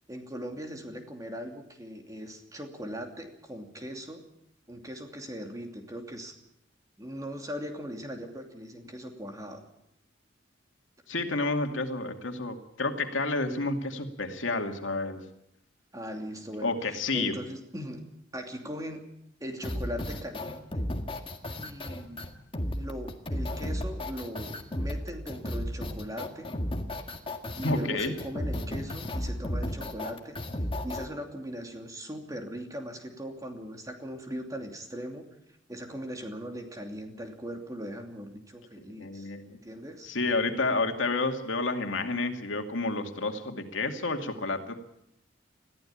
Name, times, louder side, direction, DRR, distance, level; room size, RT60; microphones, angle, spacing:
voice 1, 0.1-4.2 4.7-6.3 7.0-9.6 15.9-16.7 17.1-18.1 18.3-19.0 19.4-20.8 21.6-22.2 22.7-26.5 27.6-30.4 30.8-35.3 35.7-39.3 39.6-40.1, equal, 20° right, 3 dB, 2.7 m, -39 dB
voice 2, 11.1-15.2 16.6-17.3 27.6-28.1 39.0-39.6 40.0-44.7, left 3 dB, 85° left, 5 dB, 2.4 m, -30 dB
sound 1, 19.6-31.1, left 1 dB, 30° left, 1.8 m, -34 dB
21.0 x 15.0 x 8.7 m, 0.78 s
head